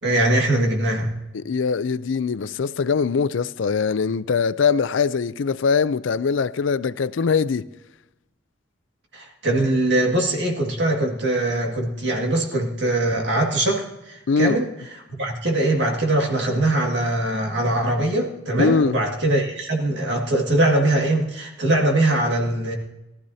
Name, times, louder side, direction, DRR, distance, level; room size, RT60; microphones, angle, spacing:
voice 1, 0.0-1.1 9.1-14.7 15.1-22.7, right 1 dB, 65° right, 2.0 m, -22 dB
voice 2, 1.3-7.7 14.3-14.6 18.6-19.0, left 5 dB, 85° left, 0.5 m, -22 dB
18.5 x 13.0 x 2.8 m
head